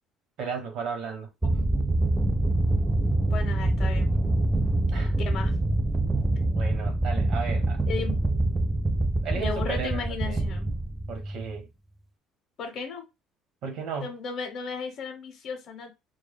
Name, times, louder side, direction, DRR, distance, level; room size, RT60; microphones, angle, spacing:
voice 1, 0.4-1.3 4.9-5.1 6.5-7.8 9.2-10.4 11.1-11.7 13.6-14.1, right 5 dB, 60° right, 0.8 m, -34 dB
sound 1, 1.4-11.5, right 2 dB, 10° right, 0.3 m, -25 dB
voice 2, 3.3-4.1 5.3-5.5 7.9-8.2 9.3-10.7 12.6-13.1 14.0-15.9, left 5 dB, 45° left, 0.7 m, -35 dB
2.2 x 2.0 x 3.3 m
cardioid pair, 140°, 0 cm